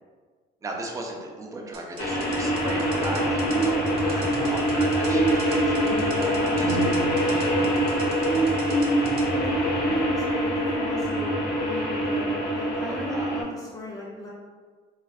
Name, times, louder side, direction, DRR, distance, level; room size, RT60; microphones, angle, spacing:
voice 1, 0.6-6.9 7.4-7.8 12.9-13.4, right 2 dB, 20° right, 0 dB, 0.5 m, -37 dB
sound 1, 1.7-9.3, right 5 dB, 70° right, 0.6 m, -44 dB
sound 2, 2.0-13.4, equal, 85° left, 0.7 m, -25 dB
sound 3, 3.4-10.3, right 3 dB, 40° left, 1.2 m, -30 dB
voice 2, 9.3-11.3 11.6-14.3, equal, 20° left, -6 dB, 0.8 m, -36 dB
2.5 x 2.4 x 3.4 m, 1.5 s
cardioid pair, 110°, 17 cm